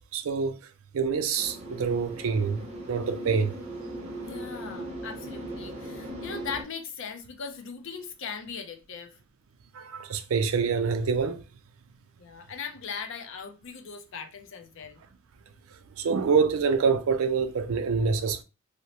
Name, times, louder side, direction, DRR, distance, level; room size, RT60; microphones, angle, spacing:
voice 1, 0.1-0.6 0.9-2.6 2.9-3.6 4.1-4.2 9.7-11.4 16.0-18.4, right 5 dB, 75° right, 0.4 m, -26 dB
sound 1, 1.4-6.6, right 1 dB, 30° right, 0.7 m, -38 dB
voice 2, 4.2-9.2 12.2-15.0, left 6 dB, 60° left, 0.5 m, -39 dB
2.8 x 2.0 x 2.8 m
head